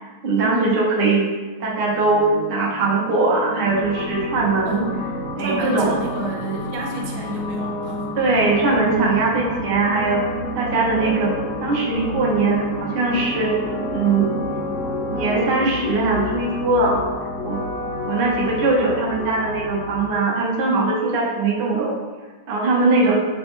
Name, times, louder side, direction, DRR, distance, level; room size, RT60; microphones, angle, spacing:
voice 1, 0.2-1.2 1.6-4.8 5.4-5.9 8.1-10.2 10.5-11.3 11.6-13.5 13.9-14.3 15.1-17.0 17.4-17.6 18.0-22.0 22.5-23.2, right 3 dB, 60° right, -4 dB, 0.6 m, -20 dB
sound 1, 1.8-19.4, left 1 dB, 10° right, 0.6 m, -33 dB
sound 2, 3.7-20.1, left 2 dB, 80° left, 1.4 m, -31 dB
voice 2, 4.6-5.0 5.4-8.1 23.0-23.2, right 2 dB, 80° right, 0 dB, 1.4 m, -30 dB
5.9 x 2.1 x 3.0 m, 1.3 s
omnidirectional pair, 2.2 m